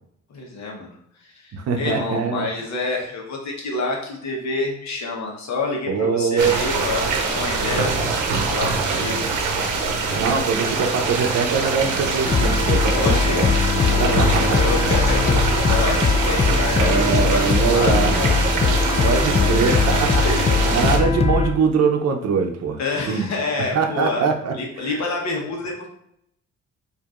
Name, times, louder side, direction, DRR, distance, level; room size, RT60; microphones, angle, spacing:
voice 1, 0.3-0.9 1.2-9.3 12.9-13.4 13.8-18.4 18.7-18.9 19.4-19.7 20.2-20.8 22.8-24.2 24.5-25.9, left 3 dB, 65° left, -1 dB, 1.1 m, -28 dB
voice 2, 1.5-2.5 5.9-6.5 10.1-13.5 14.0-14.9 16.7-18.1 18.4-18.5 19.0-20.2 20.7-22.8 23.1-23.3 23.7-25.0, right 5 dB, 55° right, 4 dB, 0.7 m, -22 dB
sound 1, 6.4-21.0, right 4 dB, 90° right, 0.7 m, -24 dB
sound 2, 7.0-13.3, equal, ahead, 1.4 m, -40 dB
sound 3, 12.2-21.5, left 4 dB, 20° left, 0.4 m, -20 dB
4.6 x 2.7 x 2.5 m, 0.73 s
cardioid pair, 90°, 30 cm